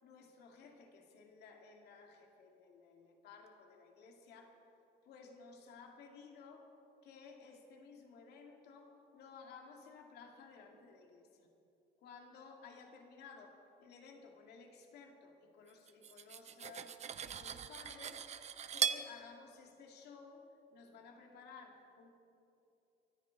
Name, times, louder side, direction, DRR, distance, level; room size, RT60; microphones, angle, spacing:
voice 1, 0.0-4.6 5.1-6.7 7.0-11.5 12.0-18.2 18.7-22.1, left 5 dB, 75° left, 2 dB, 2.3 m, -56 dB
Cutlery silverware, 15.9-19.1, right 7 dB, 40° right, 0.7 m, -39 dB
24.0 x 14.0 x 4.1 m, 2.8 s
cardioid pair, 110°, 17 cm